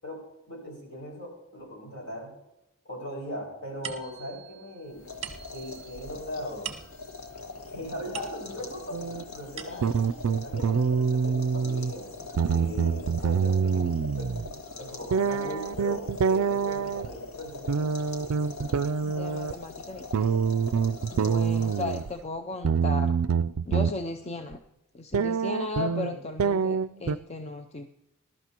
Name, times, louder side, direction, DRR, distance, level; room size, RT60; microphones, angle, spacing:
voice 1, 0.0-2.3 2.8-5.0 5.5-6.7 7.7-12.1 12.5-13.8 14.2-14.3 14.8-17.9 25.8-26.2, left 1 dB, 60° left, -2 dB, 5.6 m, -39 dB
sound 1, 3.8-8.8 9.3-10.2, right 8 dB, 30° right, 1.0 m, -43 dB
sound 2, 4.9-22.3, left 3 dB, 85° left, 1.7 m, -43 dB
sound 3, 8.9-9.2 9.8-11.9 12.2-14.5 15.1-17.1 17.7-19.5 20.1-22.1 22.6-23.9 24.5-24.6 25.1-27.2, right 6 dB, 85° right, 0.4 m, -26 dB
voice 2, 9.7-10.1 19.0-20.4 21.1-23.1 23.7-24.6 24.9-27.9, left 2 dB, 30° left, 5 dB, 0.5 m, -36 dB
20.5 x 12.0 x 2.9 m, 0.92 s
head